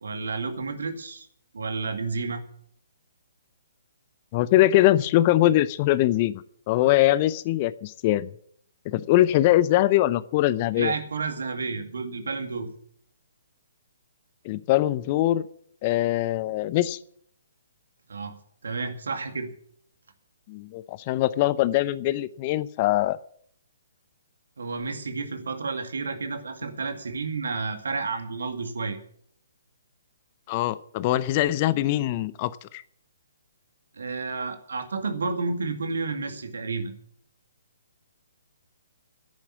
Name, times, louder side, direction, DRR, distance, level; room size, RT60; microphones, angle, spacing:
voice 1, 0.0-1.3 1.5-2.4 10.8-12.7 18.1-18.3 18.6-19.5 24.6-29.0 33.9-36.9, right 4 dB, 70° right, 7 dB, 2.1 m, -31 dB
voice 2, 4.3-8.3 8.9-10.9 14.4-15.4 15.8-17.0 20.5-23.2 30.5-32.8, left 15 dB, 35° left, 17 dB, 0.6 m, -22 dB
10.5 x 9.1 x 8.6 m, 0.63 s
figure-of-eight pair, 130°, 0 cm